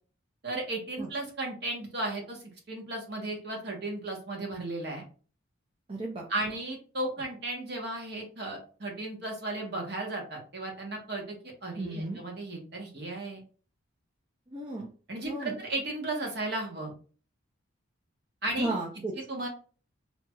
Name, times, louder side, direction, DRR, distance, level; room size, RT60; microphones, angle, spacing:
voice 1, 0.4-2.4 2.7-5.0 6.3-13.4 15.1-16.9 18.4-18.7 19.3-19.5, right 2 dB, 50° right, 1 dB, 1.1 m, -35 dB
voice 2, 5.9-6.2 11.8-12.2 14.5-14.9 15.2-15.6 18.6-19.1, right 2 dB, 25° right, -1 dB, 0.5 m, -33 dB
4.4 x 2.8 x 2.3 m, 0.38 s
head